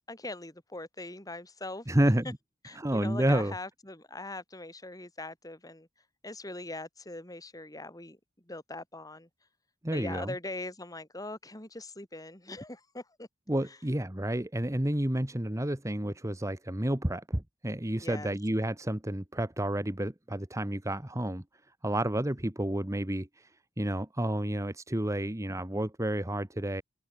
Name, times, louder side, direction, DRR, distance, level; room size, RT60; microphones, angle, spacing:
voice 1, 0.0-1.9 2.6-5.9 6.2-8.2 8.5-9.3 9.9-13.3 18.0-18.3, left 2 dB, 20° left, 3.3 m, -41 dB
voice 2, 1.9-2.4 2.7-3.5 9.8-10.3 13.5-21.4 21.8-23.5 23.8-26.8, right 1 dB, 15° right, 1.2 m, -30 dB
open air
head